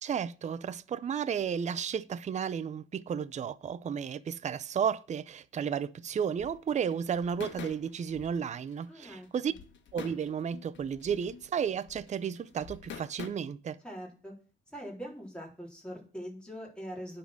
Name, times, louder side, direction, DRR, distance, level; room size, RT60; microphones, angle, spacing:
voice 1, 0.0-9.5 9.9-13.8, right 7 dB, 35° right, 0.5 m, -33 dB
sound 1, 6.4-13.3, left 7 dB, 65° left, 1.6 m, -47 dB
voice 2, 8.9-9.6 13.8-14.3 14.7-17.2, equal, 5° left, 3.9 m, -43 dB
10.0 x 4.4 x 6.1 m
cardioid pair, 90°, 20 cm